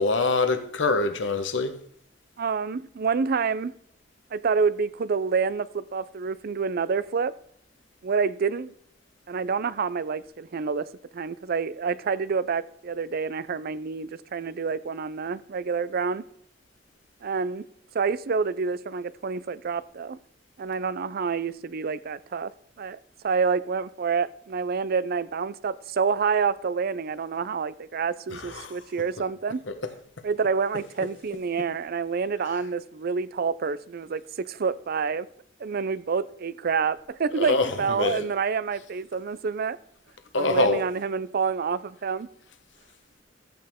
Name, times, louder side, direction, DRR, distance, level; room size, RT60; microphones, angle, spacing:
voice 1, 0.0-1.8 28.3-28.7 29.7-29.8 37.3-38.3 40.3-40.9, left 3 dB, 70° left, 1.0 m, -25 dB
voice 2, 2.4-3.7 4.3-7.3 8.0-8.7 9.3-10.9 11.1-16.3 17.2-17.7 17.9-20.2 20.6-22.5 22.8-23.0 23.2-29.6 30.2-35.3 35.6-39.8 40.3-42.3, right 5 dB, 55° right, 0.5 m, -28 dB
13.5 x 8.9 x 3.6 m
head